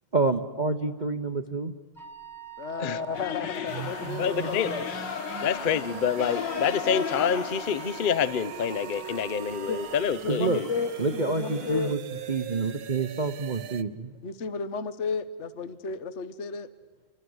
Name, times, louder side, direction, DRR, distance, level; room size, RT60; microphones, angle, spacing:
voice 1, 0.1-1.7 10.3-10.6 11.0-12.0 12.3-14.2, right 3 dB, 50° right, 10 dB, 0.5 m, -28 dB
Wind instrument woodwind instrument, 1.9-10.1, right 11 dB, ahead, 2.6 m, -44 dB
voice 2, 2.6-4.8 9.7-9.8 10.2-11.9 14.2-16.7, left 5 dB, 45° left, 14 dB, 1.1 m, -33 dB
sound 1, 3.1-11.9, left 9 dB, 60° left, 1.7 m, -37 dB
sound 2, 3.7-13.8, right 8 dB, 70° right, 1.8 m, -41 dB
voice 3, 4.2-4.7 5.4-10.7, left 7 dB, 80° left, 16 dB, 0.4 m, -27 dB
30.0 x 25.0 x 8.0 m, 1.5 s
omnidirectional pair, 2.3 m